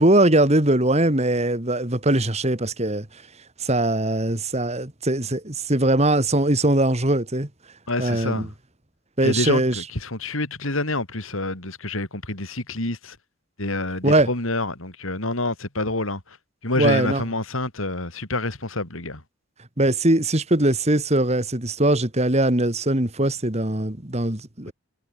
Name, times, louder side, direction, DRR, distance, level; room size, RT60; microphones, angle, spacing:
voice 1, 0.0-3.1 3.6-7.5 8.0-8.5 9.2-9.8 14.0-14.3 16.8-17.2 19.8-24.7, right 1 dB, 30° right, 2.3 m, -21 dB
voice 2, 7.9-8.5 9.2-13.2 13.6-16.2 16.6-19.2, left 2 dB, 70° left, 4.9 m, -27 dB
head